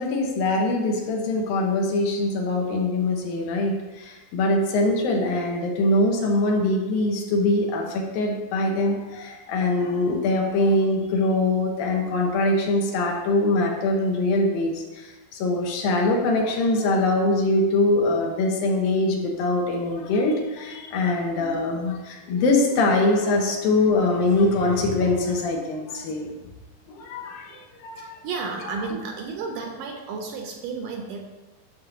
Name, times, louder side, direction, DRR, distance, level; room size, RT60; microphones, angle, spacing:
voice 1, 0.0-14.8 15.3-26.3 26.9-28.1, left 2 dB, 75° left, 1 dB, 2.9 m, -23 dB
voice 2, 27.1-27.6 28.0-31.3, right 4 dB, 70° right, 2 dB, 2.2 m, -33 dB
9.8 x 3.7 x 6.9 m, 1.1 s
omnidirectional pair, 4.2 m